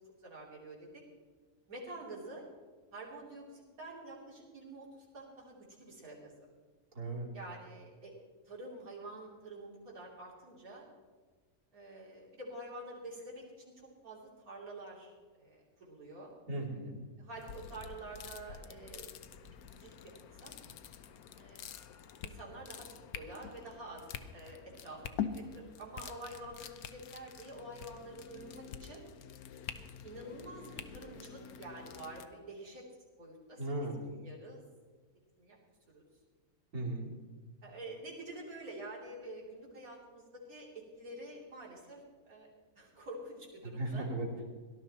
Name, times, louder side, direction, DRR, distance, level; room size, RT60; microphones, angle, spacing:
voice 1, 0.2-1.0 1.7-2.4 2.9-4.9 5.1-6.3 7.3-8.1 8.5-10.8 11.7-16.3 17.2-19.1 19.5-20.0 20.4-20.5 21.3-21.6 22.2-22.9 23.1-24.1 24.3-29.0 30.0-32.9 33.2-34.6 35.4-35.6 35.9-36.0 37.6-42.0 42.3-42.5 42.8-44.1, right 2 dB, 70° right, -4 dB, 3.5 m, -48 dB
voice 2, 7.0-7.3 16.5-17.0 33.6-34.0 36.7-37.1 43.6-44.4, right 2 dB, 90° right, -4 dB, 3.5 m, -37 dB
sound 1, 17.3-32.3, left 8 dB, 85° left, 1.2 m, -46 dB
18.0 x 12.0 x 4.3 m, 1.4 s
omnidirectional pair, 1.6 m